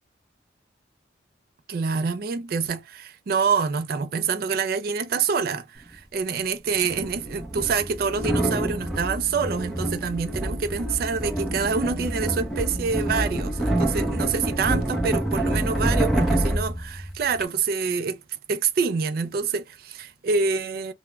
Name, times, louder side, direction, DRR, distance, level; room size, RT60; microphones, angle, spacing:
voice 1, 1.7-18.2 18.5-20.9, right 5 dB, 50° right, 0.3 m, -26 dB
sound 1, 5.8-5.9 6.8-17.4, right 1 dB, ahead, 0.6 m, -27 dB
2.3 x 2.0 x 3.0 m
head